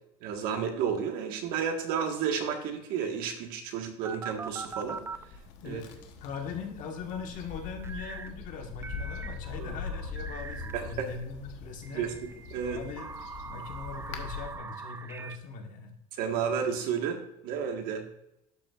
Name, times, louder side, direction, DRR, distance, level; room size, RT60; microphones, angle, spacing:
voice 1, 0.2-5.0 5.6-5.8 9.6-9.7 10.7-11.1 11.9-12.8 16.2-18.1, right 7 dB, 75° right, 4 dB, 1.5 m, -32 dB
sound 1, 4.0-5.2 7.8-8.3 8.8-10.9 11.8-15.4, right 4 dB, 15° right, 0.4 m, -42 dB
sound 2, 4.3-14.6, left 4 dB, 90° left, 1.1 m, -42 dB
voice 2, 6.2-12.1 12.6-13.1 13.4-16.0, left 5 dB, 60° left, 3 dB, 1.6 m, -40 dB
12.0 x 5.3 x 2.4 m, 0.81 s
cardioid pair, 115°, 15 cm